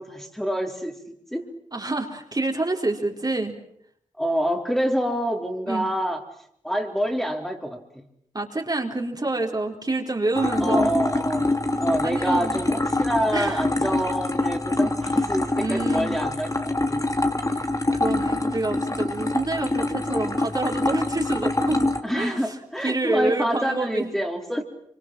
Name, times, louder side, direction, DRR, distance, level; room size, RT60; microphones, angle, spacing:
voice 1, 0.0-1.5 4.2-6.2 6.6-8.0 10.6-17.0 22.0-24.6, equal, 5° left, 2 dB, 4.0 m, -27 dB
voice 2, 1.7-3.5 5.7-5.9 8.3-10.9 12.0-12.6 13.3-13.6 15.5-16.2 17.5-22.6 22.8-24.1, right 2 dB, 30° right, 2 dB, 4.3 m, -27 dB
sound 1, 10.3-22.0, left 2 dB, 25° left, 2.8 m, -25 dB
25.0 x 25.0 x 7.7 m, 0.71 s
cardioid pair, 40°, 13 cm